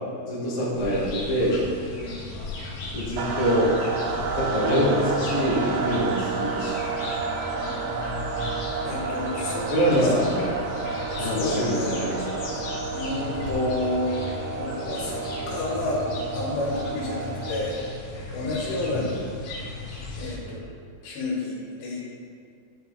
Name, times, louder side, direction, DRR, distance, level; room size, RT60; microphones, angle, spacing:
voice 1, 0.2-1.6 2.9-3.7 4.4-6.7 9.7-10.5 11.2-12.4 18.9-19.0, equal, 30° left, -9 dB, 1.4 m, -25 dB
sound 1, 0.7-20.4, left 2 dB, 70° left, 3.4 m, -36 dB
sound 2, 3.2-17.9, right 4 dB, 85° right, 2.0 m, -31 dB
voice 2, 8.9-10.2 11.1-12.0 12.9-14.1 14.6-16.1 16.3-17.8 18.3-19.1 20.2-20.6 21.0-22.1, left 2 dB, 85° left, -4 dB, 3.7 m, -30 dB
11.5 x 4.6 x 4.1 m, 2.3 s
omnidirectional pair, 4.8 m